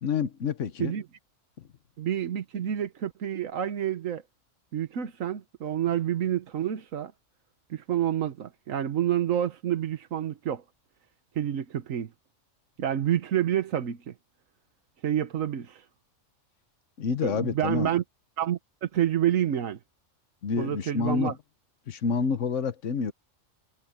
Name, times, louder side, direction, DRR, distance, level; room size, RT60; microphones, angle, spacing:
voice 1, 0.0-0.9 17.0-17.9 20.4-21.4 21.9-23.1, left 5 dB, 70° left, 1.4 m, -28 dB
voice 2, 2.0-4.2 4.7-7.1 7.7-10.6 11.4-12.1 12.8-14.1 15.0-15.8 17.2-18.0 18.4-19.8 20.6-21.3, right 10 dB, 85° right, 1.4 m, -28 dB
omnidirectional pair, 1.3 m